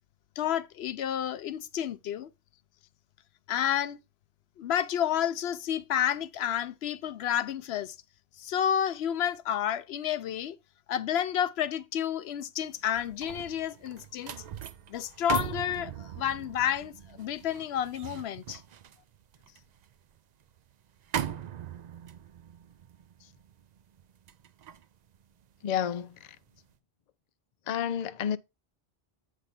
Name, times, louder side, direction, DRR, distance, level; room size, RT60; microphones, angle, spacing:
voice 1, 0.4-2.3 3.5-4.0 4.6-8.0 8.4-10.6 10.9-14.3 14.9-18.6, left 10 dB, 75° left, 0.8 m, -30 dB
sound 1, 12.7-26.0 26.4-26.7, right 9 dB, 55° right, 0.5 m, -40 dB
voice 2, 25.6-26.1 27.7-28.4, left 9 dB, 55° left, 0.5 m, -30 dB
8.3 x 3.3 x 5.7 m
omnidirectional pair, 1.1 m